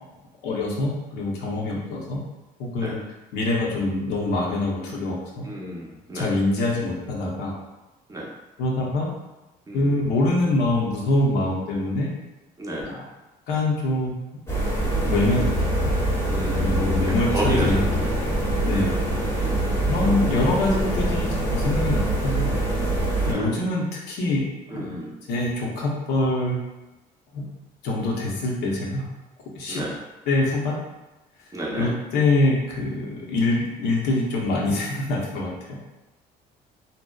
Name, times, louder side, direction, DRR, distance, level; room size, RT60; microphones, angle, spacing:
voice 1, 0.4-2.2 2.6-3.0 3.3-5.5 6.1-7.5 8.6-9.1 9.7-12.1 12.8-13.0 13.5-14.2 15.0-15.7 16.6-18.3 18.6-19.0 19.9-22.3 23.3-24.9 25.3-26.6 27.3-27.5 27.8-29.1 29.5-29.8 30.3-30.8 31.7-35.8, left 2 dB, 80° left, -3 dB, 0.6 m, -24 dB
voice 2, 5.4-6.3 8.1-8.3 9.7-10.1 12.6-12.9 15.0-15.1 16.3-18.1 18.7-19.0 19.4-19.7 22.3-22.9 23.2-23.6 24.7-25.1 29.7-30.0 31.5-31.9, right 1 dB, 20° right, -3 dB, 0.5 m, -31 dB
sound 1, 14.5-23.3, right 1 dB, 15° left, 0.7 m, -24 dB
2.7 x 2.0 x 2.2 m, 1.1 s
cardioid pair, 110°, 17 cm